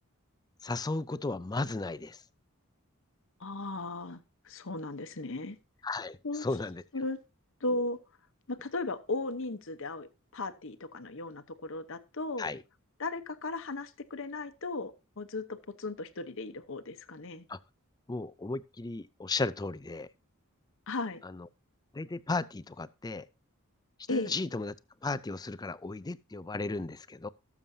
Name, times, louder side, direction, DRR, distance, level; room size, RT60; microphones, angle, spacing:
voice 1, 0.6-2.2 5.8-6.8 12.4-12.6 17.5-17.6 18.1-20.1 21.2-21.5 21.9-23.2 24.1-24.7 25.0-27.3, left 3 dB, 20° left, 0.4 m, -35 dB
voice 2, 3.4-4.2 4.4-5.6 6.2-6.5 6.9-7.2 7.6-8.0 8.5-12.5 13.0-17.5 20.9-21.2 24.1-24.3, left 2 dB, 60° left, 1.0 m, -36 dB
18.0 x 7.2 x 2.7 m
head